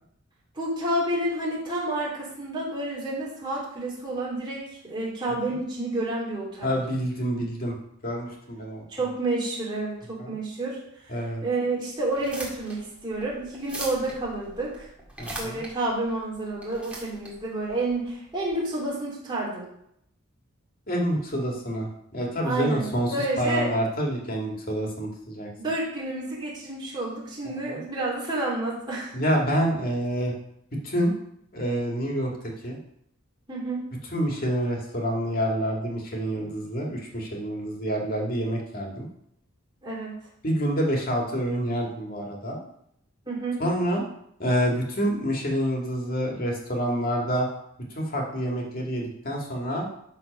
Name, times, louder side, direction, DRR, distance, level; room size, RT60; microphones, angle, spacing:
voice 1, 0.5-6.7 8.9-10.8 11.4-14.9 15.4-19.6 22.4-23.7 25.6-29.2 33.5-33.8 39.8-40.2 43.2-43.6, right 2 dB, 20° right, -5 dB, 3.2 m, -29 dB
voice 2, 6.6-7.8 8.0-8.8 10.2-10.3 11.1-11.4 15.2-15.6 20.9-25.5 27.7-27.8 29.1-30.3 30.8-31.1 31.5-32.3 32.6-32.8 34.1-39.1 40.4-42.6 43.6-44.0 44.4-47.5 47.9-49.9, equal, 45° left, 0 dB, 2.1 m, -27 dB
sound 1, 12.1-18.6, right 1 dB, 5° right, 1.9 m, -41 dB
12.0 x 4.2 x 5.3 m, 0.74 s
head